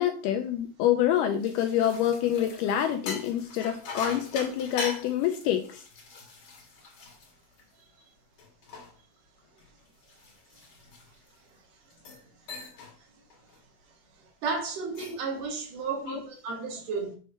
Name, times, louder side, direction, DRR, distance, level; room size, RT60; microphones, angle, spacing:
voice 1, 0.0-5.8 16.1-16.2, left 10 dB, 80° left, 1.9 m, -26 dB
sound 1, 1.1-7.9 8.4-11.4 11.9-12.2 12.5-13.0 13.3-13.6 14.7-15.3, left 4 dB, 55° left, 2.7 m, -42 dB
voice 2, 14.4-17.2, right 4 dB, 70° right, 2.7 m, -33 dB
6.4 x 3.2 x 5.5 m
omnidirectional pair, 4.1 m